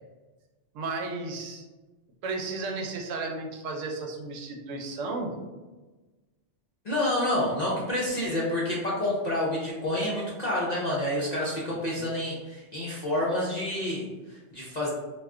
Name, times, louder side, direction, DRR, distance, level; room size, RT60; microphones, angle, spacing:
voice 1, 0.7-1.7 2.2-5.3 11.5-11.6 12.0-12.1, right 3 dB, 85° right, 3 dB, 0.9 m, -34 dB
voice 2, 6.8-14.9, left 1 dB, 55° left, -5 dB, 0.4 m, -28 dB
2.3 x 2.2 x 3.5 m, 1.2 s
omnidirectional pair, 1.3 m